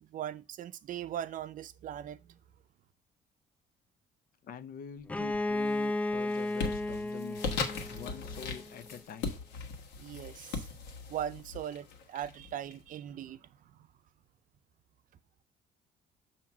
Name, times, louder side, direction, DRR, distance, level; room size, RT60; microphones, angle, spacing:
voice 1, 0.0-2.4 10.0-10.7 11.1-13.9, right 10 dB, 50° right, 0.5 m, -40 dB
voice 2, 4.4-9.4, left 7 dB, 60° left, 0.6 m, -46 dB
Bowed string instrument, 5.1-8.8, left 2 dB, 10° left, 0.3 m, -34 dB
sound 1, 5.2-5.7 6.1-12.7, left 4 dB, 85° left, 1.3 m, -39 dB
7.1 x 2.9 x 5.8 m
cardioid pair, 110°, 17 cm